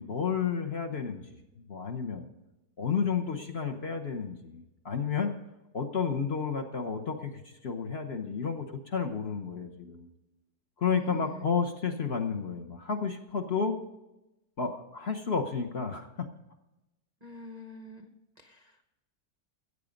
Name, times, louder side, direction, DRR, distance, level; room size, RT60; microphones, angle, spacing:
voice 1, 0.0-1.4 1.7-2.2 2.8-5.3 5.7-10.1 10.8-13.8 14.6-16.3, left 6 dB, 45° left, 4 dB, 1.0 m, -31 dB
voice 2, 10.9-11.4 17.2-18.1 18.4-18.8, right 2 dB, 45° right, 6 dB, 0.5 m, -45 dB
15.0 x 8.4 x 5.2 m, 0.96 s
omnidirectional pair, 1.9 m